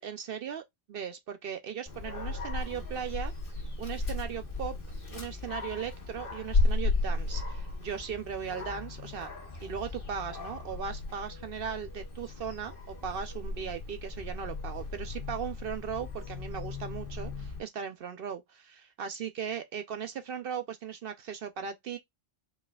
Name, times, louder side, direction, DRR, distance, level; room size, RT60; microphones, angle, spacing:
voice 1, 0.0-3.3 3.8-4.8 5.1-9.3 9.6-22.0, right 7 dB, 65° right, 0.8 m, -38 dB
Dog, 1.9-17.6, left 3 dB, 55° left, 1.5 m, -35 dB
4.8 x 4.1 x 2.3 m
omnidirectional pair, 1.1 m